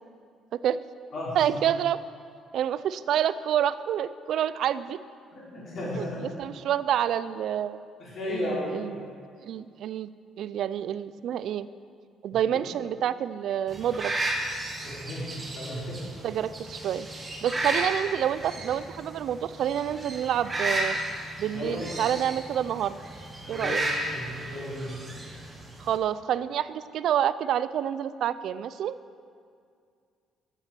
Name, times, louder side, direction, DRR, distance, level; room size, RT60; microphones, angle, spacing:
voice 1, 1.3-2.0 2.5-5.0 6.0-6.1 6.4-7.8 8.3-9.1 9.4-10.1 10.4-11.7 12.2-14.1 16.2-17.1 17.4-21.0 21.4-23.0 23.5-23.8 25.8-29.0, right 10 dB, 55° right, 15 dB, 0.4 m, -28 dB
voice 2, 5.3-6.2 8.0-8.8 14.8-16.0 21.5-22.1 23.4-25.1, left 1 dB, 40° left, -6 dB, 4.2 m, -34 dB
sound 1, 13.7-26.0, right 1 dB, 15° right, 1.6 m, -34 dB
12.5 x 8.1 x 7.6 m, 2.2 s
cardioid pair, 170°, 0 cm